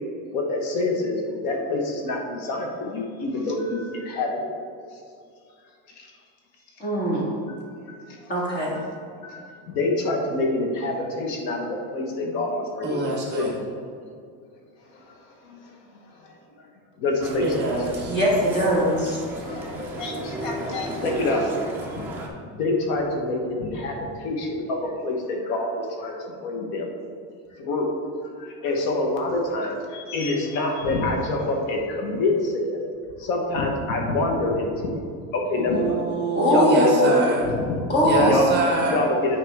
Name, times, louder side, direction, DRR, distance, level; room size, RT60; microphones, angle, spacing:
voice 1, 0.2-4.6 6.0-6.1 8.1-8.4 9.2-13.5 14.9-15.2 15.4-15.8 16.2-16.6 17.0-17.7 19.2-22.1 22.5-27.0 27.5-28.0 28.4-32.8 33.2-35.0 35.3-36.0 36.5-37.8 38.0-38.5 38.9-39.4, left 2 dB, 75° left, 1 dB, 1.4 m, -27 dB
voice 2, 6.8-7.3 8.3-8.8 18.0-19.2 36.3-37.2 37.9-38.5, equal, 25° left, -5 dB, 1.8 m, -20 dB
voice 3, 12.8-13.6 17.4-18.2 35.5-37.5 38.0-39.0, right 2 dB, 25° right, -1 dB, 1.1 m, -25 dB
sound 1, 17.2-22.3, right 1 dB, 5° right, 0.3 m, -33 dB
9.1 x 4.9 x 3.6 m, 2.3 s
cardioid pair, 175°, 43 cm